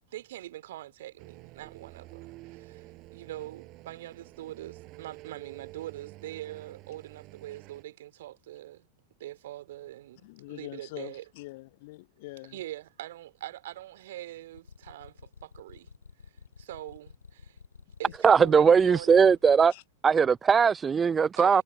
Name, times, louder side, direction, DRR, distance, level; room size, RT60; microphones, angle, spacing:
voice 1, 0.1-8.9 9.2-11.2 12.5-15.9 16.6-17.6 18.0-19.2 21.3-21.6, right 14 dB, 55° right, 3.2 m, -43 dB
sound 1, 1.2-7.8, right 20 dB, 40° right, 6.3 m, -49 dB
voice 2, 10.2-12.6 19.7-19.8, left 21 dB, 50° left, 1.1 m, -44 dB
sound 2, 14.5-19.7, left 5 dB, 75° left, 4.5 m, -50 dB
voice 3, 18.2-19.7 20.0-21.6, right 6 dB, 20° right, 0.4 m, -20 dB
figure-of-eight pair, 90°, 0 cm